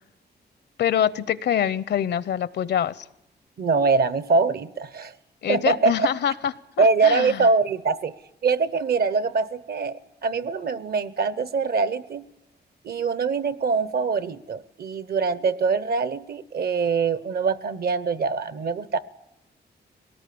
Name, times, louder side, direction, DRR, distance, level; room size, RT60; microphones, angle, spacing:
voice 1, 0.8-3.1 5.4-7.5, left 9 dB, 75° left, 18 dB, 0.7 m, -25 dB
voice 2, 3.6-5.1 5.5-5.9 6.8-8.1 8.4-12.2 12.8-19.0, right 4 dB, 65° right, 16 dB, 0.9 m, -23 dB
21.5 x 18.5 x 8.6 m, 0.87 s
wide cardioid pair, 120°, 18 cm